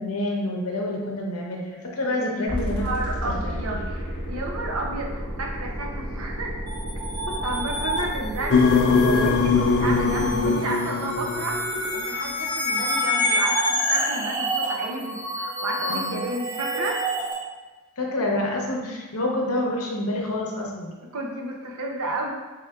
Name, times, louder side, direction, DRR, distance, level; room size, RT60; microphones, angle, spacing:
voice 1, 0.0-2.9 3.2-3.5 15.9-16.2 18.0-20.9, left 1 dB, 75° left, -1 dB, 0.8 m, -28 dB
voice 2, 2.0-6.5 7.3-13.6 13.9-17.1 21.1-22.3, right 2 dB, 70° right, 0 dB, 0.6 m, -32 dB
sound 1, 2.5-10.5, equal, 40° right, 1.4 m, -32 dB
sound 2, 6.7-17.3, equal, 20° right, 0.7 m, -28 dB
sound 3, 8.5-11.8, left 4 dB, 55° left, 0.3 m, -21 dB
4.6 x 3.4 x 2.3 m, 1.2 s
head